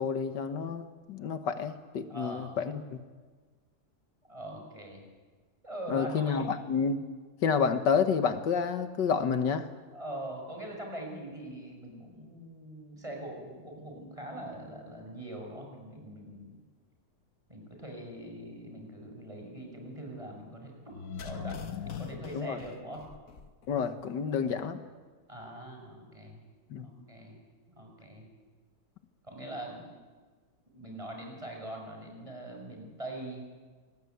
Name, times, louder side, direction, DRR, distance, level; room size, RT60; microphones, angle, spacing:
voice 1, 0.0-3.0 5.9-7.0 7.4-9.7 22.3-22.6 23.7-24.8 26.7-26.9, left 6 dB, 80° left, 9 dB, 1.9 m, -29 dB
voice 2, 2.1-2.6 4.3-5.0 5.6-6.4 9.9-16.5 17.5-21.0 21.2-21.6 21.9-23.1 25.3-26.4 26.8-28.3 29.2-30.0 30.7-33.5, right 1 dB, 15° right, 1 dB, 6.2 m, -42 dB
sound 1, 20.9-23.7 24.0-24.1, left 7 dB, 55° left, 1.6 m, -41 dB
26.5 x 20.0 x 9.4 m, 1.4 s
omnidirectional pair, 1.9 m